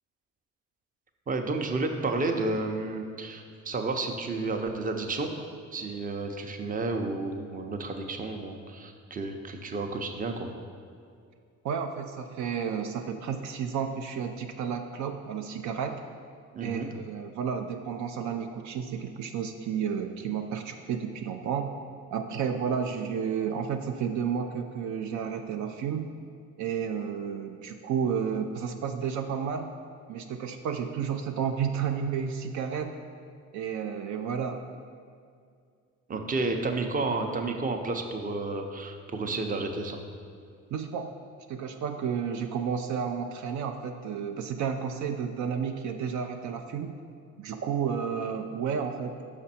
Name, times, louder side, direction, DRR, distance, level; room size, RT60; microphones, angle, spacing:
voice 1, 1.3-5.3 5.7-10.5 16.5-16.9 36.1-40.0, right 3 dB, 30° right, 5 dB, 0.6 m, -31 dB
voice 2, 11.6-16.0 16.6-21.7 22.1-26.1 26.6-29.7 30.1-32.9 33.5-34.6 40.7-41.1 41.5-47.0 47.4-49.2, right 7 dB, 70° right, 5 dB, 0.5 m, -31 dB
6.0 x 5.1 x 4.2 m, 2.3 s
cardioid pair, 90°, 30 cm